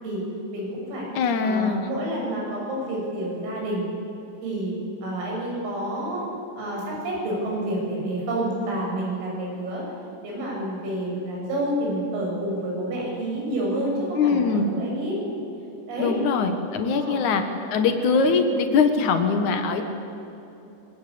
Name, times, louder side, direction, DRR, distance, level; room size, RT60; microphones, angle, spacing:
voice 1, 0.5-1.1 1.4-3.9 4.4-4.8 5.0-6.3 6.6-9.8 10.2-15.2 15.9-16.2 16.9-17.2, right 1 dB, 80° right, -2 dB, 9.7 m, -29 dB
voice 2, 1.1-1.9 14.1-14.7 16.0-17.4 17.7-19.8, left 5 dB, 75° left, 6 dB, 1.7 m, -22 dB
23.5 x 23.0 x 8.6 m, 2.9 s
omnidirectional pair, 5.9 m